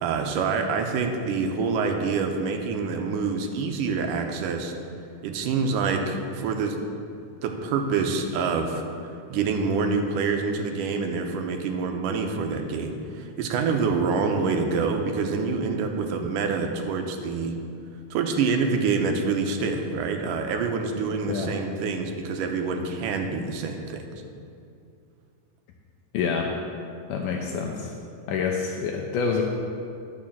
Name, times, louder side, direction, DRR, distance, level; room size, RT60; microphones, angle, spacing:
voice 1, 0.0-4.7 5.2-6.8 7.4-17.5 18.1-24.1, right 4 dB, 80° right, 4 dB, 2.5 m, -26 dB
voice 2, 26.1-26.6 27.1-27.9 28.3-29.4, left 5 dB, 80° left, 1 dB, 2.3 m, -27 dB
11.0 x 6.8 x 7.2 m, 2.5 s
omnidirectional pair, 3.8 m